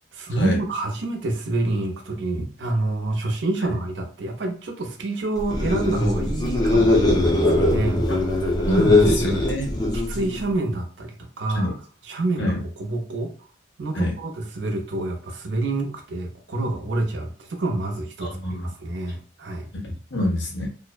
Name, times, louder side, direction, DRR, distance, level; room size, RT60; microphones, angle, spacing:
voice 1, 0.1-8.1 8.7-9.3 9.9-11.7 12.0-13.3 13.8-19.7, right 2 dB, 75° right, 3 dB, 0.6 m, -27 dB
sound 1, 5.4-10.5, left 2 dB, 20° left, 0.5 m, -21 dB
voice 2, 8.7-9.7 11.5-11.7 12.4-12.5 14.0-14.1 18.2-18.6 19.7-20.7, left 1 dB, 75° left, -1 dB, 0.9 m, -25 dB
2.6 x 2.1 x 2.3 m, 0.42 s
head